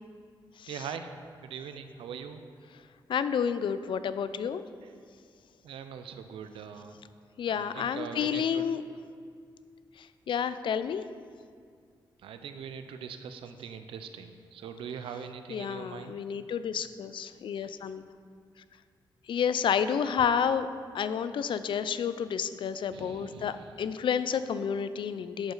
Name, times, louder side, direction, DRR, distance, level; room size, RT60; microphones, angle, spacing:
voice 1, 0.7-1.1 1.4-2.4 5.6-7.0 7.5-8.6 12.2-16.1 17.6-17.7 22.9-23.7, right 7 dB, 90° right, 9 dB, 0.5 m, -41 dB
voice 2, 3.1-4.6 7.4-8.8 10.0-11.0 15.5-18.1 19.3-20.7 20.9-25.5, left 7 dB, 70° left, 13 dB, 0.4 m, -30 dB
11.0 x 5.1 x 3.9 m, 2.1 s
cardioid pair, 60°, 9 cm